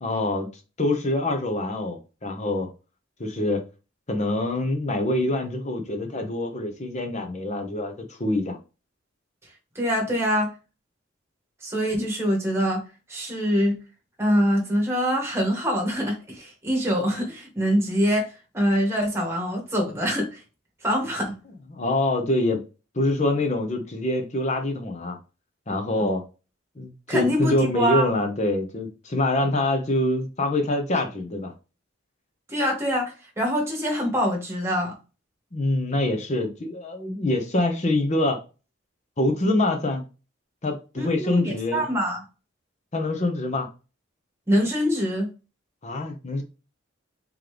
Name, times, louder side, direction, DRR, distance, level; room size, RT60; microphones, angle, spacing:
voice 1, 0.0-0.5 0.8-2.7 3.2-3.6 4.1-8.6 21.7-22.6 22.9-25.2 25.7-26.2 26.8-31.5 35.5-38.4 39.2-40.0 40.6-41.8 42.9-43.7 45.8-46.4, left 2 dB, 35° left, 0.8 m, -25 dB
voice 2, 9.7-10.5 11.6-12.8 13.1-13.8 14.2-18.2 18.5-20.4 20.8-21.3 26.0-26.1 27.1-28.1 32.5-34.9 41.0-42.2 44.5-45.3, equal, 15° right, 1.2 m, -24 dB
3.8 x 3.1 x 3.3 m
head